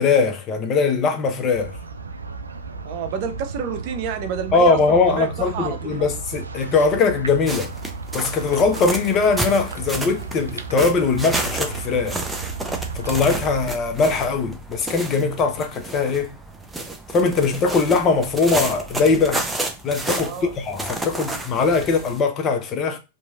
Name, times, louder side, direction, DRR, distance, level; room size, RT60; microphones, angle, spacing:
voice 1, 0.0-1.8 4.5-7.7 8.1-12.2 12.9-16.4 17.1-19.5 19.8-23.0, left 4 dB, 35° left, 0.6 m, -21 dB
sound 1, 1.5-13.7, right 4 dB, 85° right, 0.3 m, -34 dB
voice 2, 2.8-6.0 20.2-20.5, right 7 dB, 50° right, 0.6 m, -29 dB
sound 2, 7.5-22.2, right 2 dB, 10° right, 0.6 m, -31 dB
2.9 x 2.6 x 2.4 m
hypercardioid pair, 95°, 0 cm